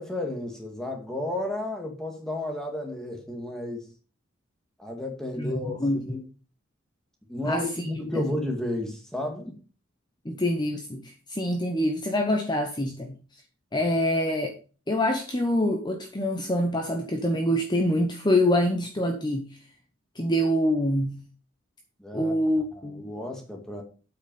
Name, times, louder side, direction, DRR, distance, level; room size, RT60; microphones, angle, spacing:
voice 1, 0.0-3.9 4.8-5.8 6.1-6.2 7.3-9.6 22.0-22.4 22.7-23.8, left 1 dB, 5° left, 2.2 m, -32 dB
voice 2, 5.4-6.1 7.5-7.8 8.1-8.3 10.2-13.2 13.7-14.5 14.9-19.6 20.2-21.2 22.1-23.1, left 1 dB, 20° left, 1.0 m, -25 dB
8.4 x 6.2 x 5.4 m
head